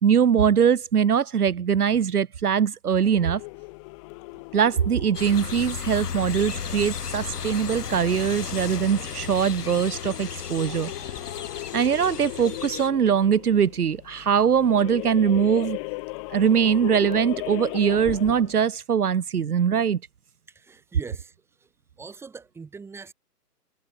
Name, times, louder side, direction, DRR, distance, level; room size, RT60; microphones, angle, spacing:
voice 1, 0.0-3.4 4.5-10.9 11.7-15.8 16.3-20.0, right 7 dB, 65° right, 2.6 m, -22 dB
sound 1, 2.9-18.6, left 29 dB, 20° left, 2.4 m, -38 dB
sound 2, 5.1-12.9, left 7 dB, 70° left, 5.7 m, -34 dB
voice 2, 20.5-21.7 22.0-23.1, right 5 dB, 5° right, 6.5 m, -42 dB
hypercardioid pair, 165°, 48 cm